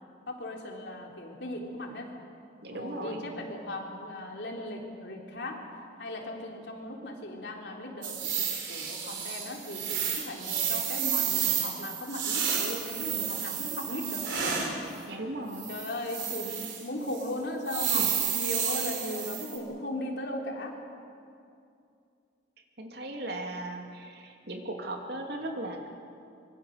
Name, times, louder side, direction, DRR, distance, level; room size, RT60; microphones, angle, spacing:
voice 1, 0.3-2.1 2.7-5.6 6.0-14.7 15.7-18.0 18.3-20.8, left 1 dB, 60° left, 0 dB, 3.5 m, -37 dB
voice 2, 2.6-3.2 15.1-15.7 17.9-18.1 22.8-25.9, right 1 dB, 60° right, 2 dB, 2.8 m, -37 dB
sound 1, 8.0-14.8 15.5-16.8 17.1-17.3 17.7-19.6, right 8 dB, 75° right, 3.8 m, -31 dB
25.0 x 23.0 x 6.6 m, 2.5 s
head